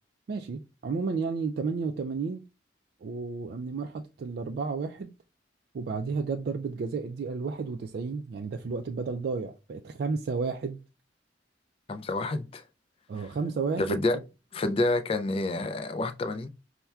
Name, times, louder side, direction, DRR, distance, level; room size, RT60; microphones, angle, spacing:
voice 1, 0.3-2.4 3.0-5.1 5.7-10.8 13.1-14.2, right 4 dB, 55° right, 0.3 m, -32 dB
voice 2, 11.9-12.6 13.2-13.3 13.8-14.2 14.5-16.5, left 2 dB, 30° left, 0.3 m, -28 dB
5.5 x 2.1 x 2.3 m
head